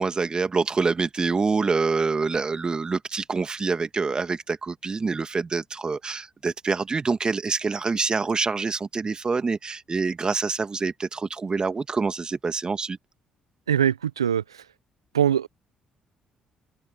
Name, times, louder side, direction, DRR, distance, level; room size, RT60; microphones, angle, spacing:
voice 1, 0.0-13.0, right 4 dB, 30° right, 2.3 m, -26 dB
voice 2, 13.7-14.7 15.1-15.5, right 9 dB, 90° right, 0.8 m, -22 dB
hypercardioid pair, 45°, 3 cm